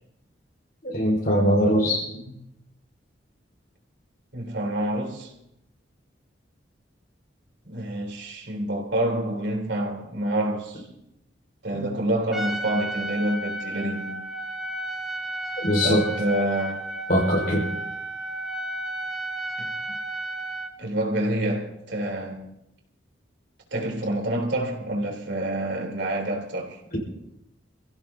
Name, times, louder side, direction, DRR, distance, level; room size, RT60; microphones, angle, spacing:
voice 1, 0.8-2.1 11.7-11.8 15.6-16.0 17.1-17.7, equal, 50° left, 5.0 m, -21 dB
voice 2, 4.3-5.3 7.6-10.9 11.6-14.3 15.8-16.9 19.6-19.7 20.8-22.5 23.7-26.8, right 1 dB, 70° right, 3.7 m, -27 dB
Trumpet, 12.3-20.7, right 1 dB, ahead, 1.3 m, -33 dB
29.0 x 16.0 x 2.8 m
head